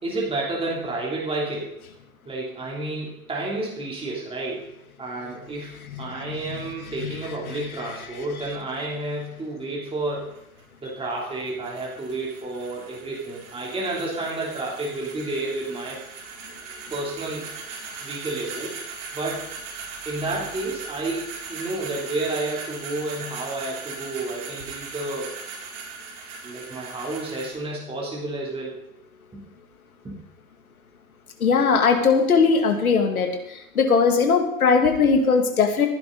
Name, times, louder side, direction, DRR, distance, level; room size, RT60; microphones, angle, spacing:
voice 1, 0.0-1.7 2.2-4.7 5.0-10.3 10.8-16.0 16.9-17.5 18.0-18.8 19.1-19.5 20.0-25.3 26.4-28.7 29.3-29.4 30.0-30.1, right 2 dB, 15° right, -4 dB, 3.2 m, -30 dB
voice 2, 5.9-6.6 7.0-7.1 7.5-7.6 31.4-33.3 33.7-35.9, left 5 dB, 85° left, 5 dB, 2.3 m, -20 dB
sound 1, 10.0-27.5, right 5 dB, 50° right, 4.4 m, -39 dB
16.0 x 10.5 x 4.0 m, 0.82 s
hypercardioid pair, 110°, 42 cm